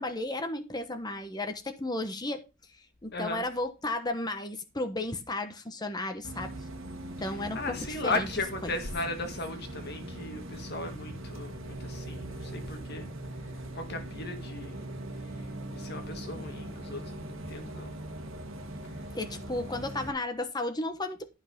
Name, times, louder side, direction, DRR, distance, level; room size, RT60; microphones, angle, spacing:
voice 1, 0.0-2.4 2.7-6.5 7.2-8.3 19.1-21.3, left 2 dB, 20° left, 1.2 m, -34 dB
voice 2, 3.1-3.5 7.2-13.1 13.7-14.8 15.7-18.0, left 2 dB, 55° left, 1.8 m, -36 dB
Bus, 6.2-20.1, right 1 dB, 75° right, 1.8 m, -41 dB
12.5 x 5.6 x 5.4 m
head